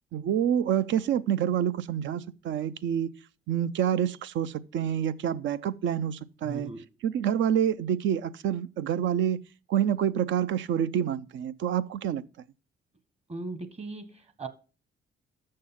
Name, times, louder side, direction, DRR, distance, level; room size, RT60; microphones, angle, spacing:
voice 1, 0.1-3.1 3.5-6.7 7.0-9.4 9.7-12.2, right 9 dB, 70° right, 0.6 m, -27 dB
voice 2, 6.4-6.9 13.3-14.5, right 2 dB, 30° right, 1.3 m, -38 dB
6.6 x 6.3 x 5.7 m
cardioid pair, 90°, 20 cm